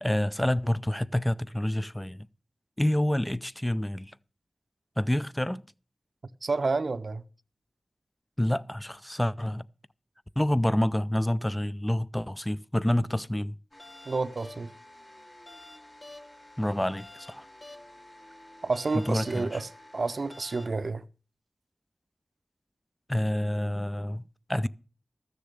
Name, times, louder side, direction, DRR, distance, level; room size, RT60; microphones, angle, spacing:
voice 1, 0.0-2.3 2.8-4.1 5.0-5.6 8.4-9.6 10.4-13.6 16.6-17.5 18.9-19.6 23.1-24.7, left 1 dB, 10° left, 0.5 m, -28 dB
voice 2, 6.4-7.2 14.1-14.7 18.6-21.0, right 3 dB, 75° right, 0.6 m, -30 dB
sound 1, 13.7-20.7, left 1 dB, 45° left, 2.7 m, -49 dB
14.0 x 6.8 x 6.5 m
wide cardioid pair, 50°, 0 cm